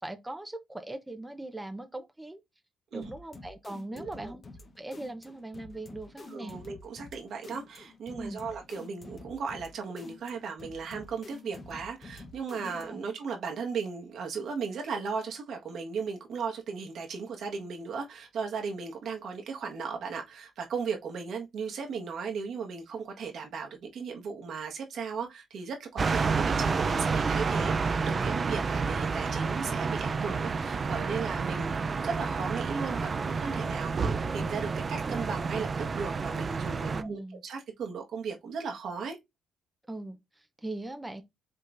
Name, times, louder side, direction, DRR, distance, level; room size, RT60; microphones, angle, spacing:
voice 1, 0.0-2.4 2.9-4.4 4.8-6.6 8.2-8.4 12.6-13.0 36.9-37.4 39.9-41.2, right 2 dB, 10° right, 0.7 m, -40 dB
sound 1, 3.0-13.1, left 2 dB, 40° left, 1.0 m, -49 dB
voice 2, 3.9-4.3 6.3-35.7 35.9-39.2, right 5 dB, 70° right, 1.4 m, -36 dB
sound 2, 26.0-37.0, right 4 dB, 40° right, 0.5 m, -29 dB
5.3 x 3.7 x 2.6 m
cardioid pair, 90°, 0 cm